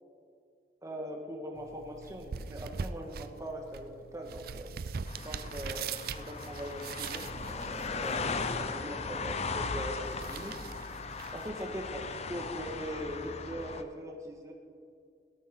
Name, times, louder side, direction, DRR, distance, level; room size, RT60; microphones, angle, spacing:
voice 1, 0.8-4.7 5.2-10.5 11.3-14.5, equal, 20° right, 2 dB, 1.7 m, -41 dB
sound 1, 1.5-12.5, right 5 dB, 60° right, 0.4 m, -43 dB
sound 2, 5.1-13.8, left 4 dB, 40° left, 0.7 m, -37 dB
17.0 x 13.0 x 3.9 m, 2.3 s
head